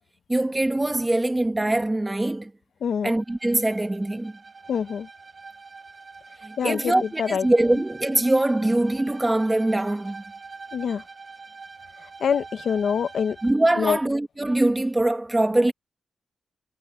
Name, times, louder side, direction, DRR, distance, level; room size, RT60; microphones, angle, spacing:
voice 1, 0.3-2.5 3.0-4.3 6.4-10.2 13.4-15.7, right 1 dB, 15° right, 1.6 m, -23 dB
voice 2, 2.8-3.2 4.7-5.1 6.6-7.5 10.7-11.0 12.2-13.4 13.8-14.0, left 7 dB, 70° left, 1.0 m, -25 dB
Bowed string instrument, 3.2-13.7, right 4 dB, 30° right, 1.5 m, -44 dB
wide cardioid pair, 125°, 0 cm